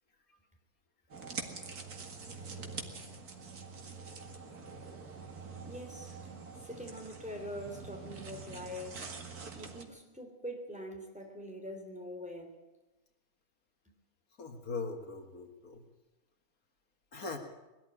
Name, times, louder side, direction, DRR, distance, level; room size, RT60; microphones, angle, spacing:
sound 1, 1.1-9.8, right 4 dB, 85° right, 2.5 m, -45 dB
voice 1, 5.6-9.1 9.5-12.6, equal, 5° right, 3.3 m, -44 dB
voice 2, 14.4-15.8 17.1-17.4, left 4 dB, 70° left, 2.4 m, -40 dB
20.5 x 13.0 x 9.9 m
omnidirectional pair, 1.6 m